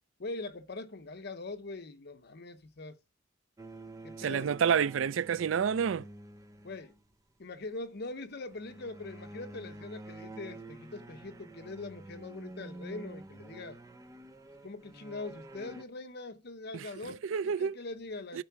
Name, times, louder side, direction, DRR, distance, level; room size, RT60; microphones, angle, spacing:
voice 1, 0.2-3.0 4.0-4.5 6.6-6.9 7.4-13.8 14.6-18.4, left 3 dB, 55° left, 0.9 m, -42 dB
sound 1, 3.6-7.1 8.5-15.8, right 2 dB, 15° right, 0.8 m, -48 dB
voice 2, 4.2-6.0 16.7-16.8 17.3-17.7 18.3-18.4, right 7 dB, 80° right, 0.4 m, -28 dB
12.0 x 4.8 x 5.7 m
head